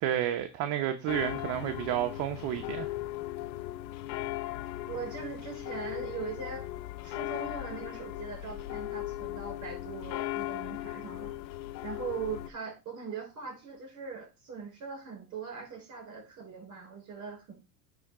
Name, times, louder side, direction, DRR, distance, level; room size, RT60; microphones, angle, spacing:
voice 1, 0.0-2.9, right 11 dB, 55° right, 1.0 m, -31 dB
sound 1, 1.1-12.5, left 15 dB, 85° left, 0.8 m, -38 dB
voice 2, 4.8-6.7 7.0-11.3 11.8-17.5, right 6 dB, 35° right, 5.1 m, -41 dB
9.6 x 3.6 x 4.9 m
supercardioid pair, 105°, 50 cm